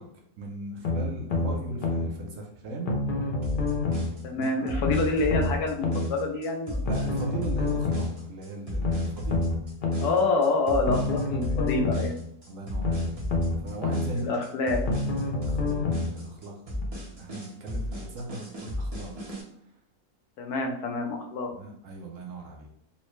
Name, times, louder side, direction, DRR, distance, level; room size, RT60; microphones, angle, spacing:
voice 1, 0.0-2.9 4.4-4.8 6.8-9.5 12.5-13.1 13.6-14.3 15.1-15.8 16.1-16.6 17.2-19.1 21.5-22.7, right 2 dB, 65° right, 0 dB, 0.9 m, -38 dB
sound 1, 0.8-2.1 2.9-4.1 4.8-6.1 6.9-8.1 8.8-10.1 10.9-12.1 12.8-14.1 14.9-16.1 16.8-16.9, left 3 dB, 60° left, 0.5 m, -27 dB
sound 2, 3.4-19.4, left 1 dB, 40° right, 0.5 m, -34 dB
voice 2, 4.2-6.8 10.0-12.1 14.2-14.8 20.4-21.5, left 3 dB, 90° left, 3 dB, 1.2 m, -27 dB
3.9 x 2.1 x 3.0 m, 0.72 s
omnidirectional pair, 1.6 m